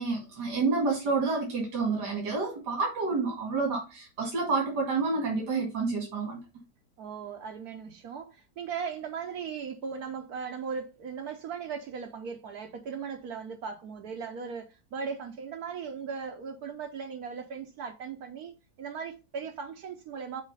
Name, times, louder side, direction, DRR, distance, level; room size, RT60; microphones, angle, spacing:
voice 1, 0.0-6.4, right 4 dB, 85° right, 2.6 m, -29 dB
voice 2, 7.0-18.5 18.8-20.4, right 6 dB, 70° right, 1.2 m, -38 dB
6.5 x 4.2 x 5.4 m
omnidirectional pair, 1.8 m